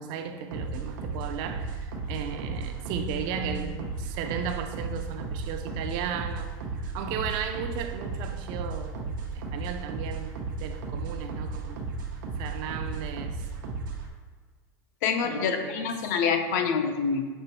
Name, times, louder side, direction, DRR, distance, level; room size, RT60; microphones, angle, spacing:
voice 1, 0.0-6.5 6.9-11.8 12.4-13.4 15.2-15.9, right 7 dB, 45° right, 0.4 m, -35 dB
sound 1, 0.5-14.1, right 3 dB, 90° right, 0.7 m, -35 dB
voice 2, 15.0-17.3, left 6 dB, 60° left, 0.5 m, -26 dB
5.4 x 2.9 x 2.9 m
supercardioid pair, 155°, 10 cm